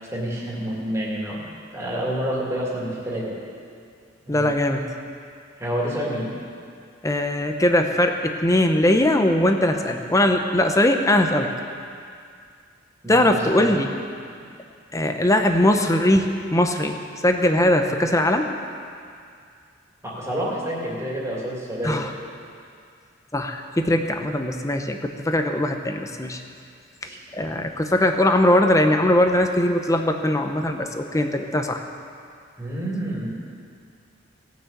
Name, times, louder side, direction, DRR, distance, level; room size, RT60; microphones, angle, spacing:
voice 1, 0.1-3.4 4.2-4.5 5.6-6.3 13.0-13.8 20.0-22.0 27.0-27.2 32.6-33.3, equal, 15° right, -5 dB, 2.7 m, -28 dB
voice 2, 4.3-4.9 7.0-11.5 13.1-13.9 14.9-17.0 17.2-18.5 21.8-22.1 23.3-26.4 27.3-31.8, left 1 dB, 15° left, 5 dB, 0.8 m, -20 dB
17.5 x 6.2 x 8.1 m, 2.3 s
head